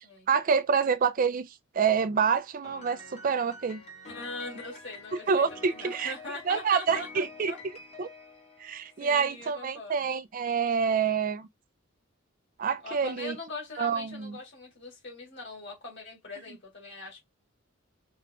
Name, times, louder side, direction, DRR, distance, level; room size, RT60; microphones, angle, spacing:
voice 1, 0.3-3.8 5.3-6.1 6.5-7.5 8.0-8.1 8.6-11.5 12.6-13.4 13.8-14.4, right 6 dB, 40° right, 0.4 m, -27 dB
Piano, 2.6-9.2, left 2 dB, 30° left, 1.3 m, -47 dB
voice 2, 4.0-7.6 9.0-10.1 12.8-17.2, left 2 dB, 55° left, 3.0 m, -41 dB
4.8 x 3.5 x 2.2 m
head